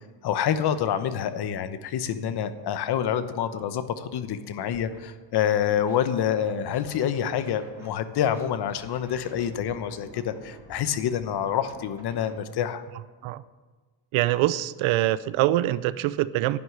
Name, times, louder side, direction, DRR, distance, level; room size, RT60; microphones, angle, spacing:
voice 1, 0.2-12.8, left 9 dB, 55° left, 1.0 m, -27 dB
Scratching (performance technique), 4.6-5.0 5.3-7.9 8.2-12.4, right 1 dB, 5° right, 2.8 m, -49 dB
voice 2, 14.1-16.6, right 15 dB, 85° right, 0.7 m, -24 dB
11.0 x 8.0 x 9.8 m
cardioid pair, 145°, 46 cm